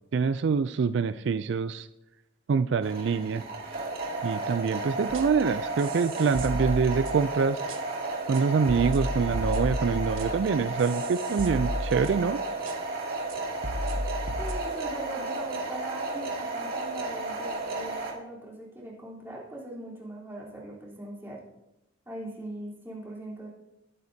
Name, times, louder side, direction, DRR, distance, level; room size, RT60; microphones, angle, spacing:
voice 1, 0.1-1.9 2.5-3.4 4.2-7.6 8.3-12.4, right 5 dB, 65° right, 13 dB, 0.3 m, -25 dB
sound 1, 2.8-18.1, right 3 dB, 50° right, 2.3 m, -33 dB
sound 2, 5.1-5.4 5.8-7.3 7.7-7.8 8.3-8.4 8.7-12.3 12.7-12.8 13.3-13.4 13.6-14.5, left 1 dB, 90° right, 1.3 m, -34 dB
voice 2, 14.4-21.4 22.1-23.5, right 1 dB, 10° right, -5 dB, 3.6 m, -40 dB
20.5 x 9.4 x 2.8 m, 0.92 s
head